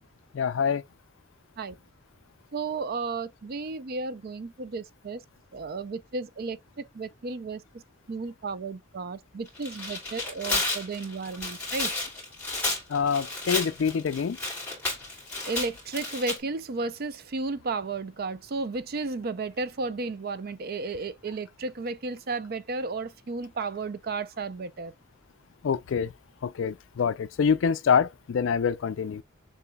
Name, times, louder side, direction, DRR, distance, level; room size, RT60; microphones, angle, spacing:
voice 1, 0.3-0.8 12.9-14.4 25.6-26.1 26.4-29.2, left 6 dB, 65° left, 0.4 m, -26 dB
voice 2, 2.5-5.2 5.5-7.6 8.1-11.9 15.4-24.9, right 3 dB, 50° right, 0.5 m, -33 dB
Tearing, 9.5-16.4, left 2 dB, 5° left, 2.5 m, -32 dB
6.8 x 2.6 x 2.2 m
head